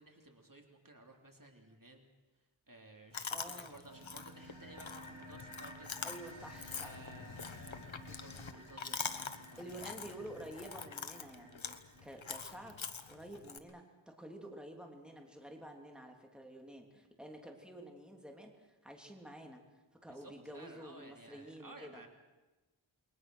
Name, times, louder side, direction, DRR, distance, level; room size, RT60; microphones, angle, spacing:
voice 1, 0.0-2.1 2.7-6.2 6.8-10.3 20.1-22.1, right 1 dB, 45° right, 3 dB, 3.2 m, -56 dB
Chewing mastication, 3.1-13.6, left 5 dB, 75° left, 1.4 m, -45 dB
voice 2, 3.3-3.7 6.0-7.0 9.6-11.7 12.0-12.8 13.1-22.0, right 1 dB, ahead, 2 dB, 3.2 m, -50 dB
sound 1, 3.7-4.1 4.4-7.2 7.4-7.6 7.8-7.9 8.2-8.4 9.2-13.8, left 1 dB, 35° left, 5.3 m, -69 dB
sound 2, 3.8-12.8, equal, 65° right, 3.7 m, -55 dB
29.0 x 22.0 x 6.4 m, 1.1 s
wide cardioid pair, 55°, 47 cm